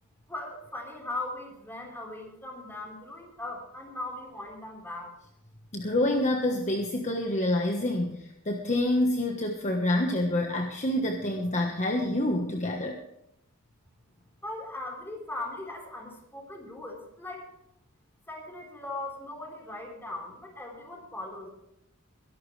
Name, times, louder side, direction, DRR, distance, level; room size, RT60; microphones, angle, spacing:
voice 1, 0.3-5.1 14.4-17.5 18.3-21.5, left 2 dB, 10° left, -1 dB, 4.4 m, -39 dB
voice 2, 5.7-13.0, left 1 dB, 35° left, 3 dB, 1.3 m, -27 dB
22.0 x 11.5 x 3.3 m, 0.81 s
head